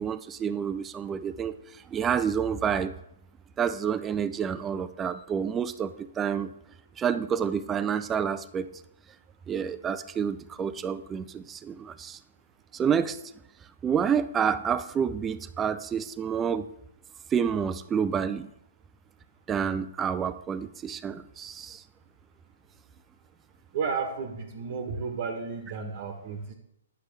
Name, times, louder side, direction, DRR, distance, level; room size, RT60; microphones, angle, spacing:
voice 1, 0.0-2.9 3.6-6.5 7.0-8.7 9.5-12.2 12.7-13.2 13.8-16.7 17.3-18.5 19.5-21.8, right 7 dB, 15° right, 13 dB, 0.4 m, -29 dB
voice 2, 23.7-26.5, right 5 dB, 50° right, 4 dB, 1.1 m, -32 dB
9.6 x 6.6 x 3.3 m, 0.78 s
hypercardioid pair, 130°, 0 cm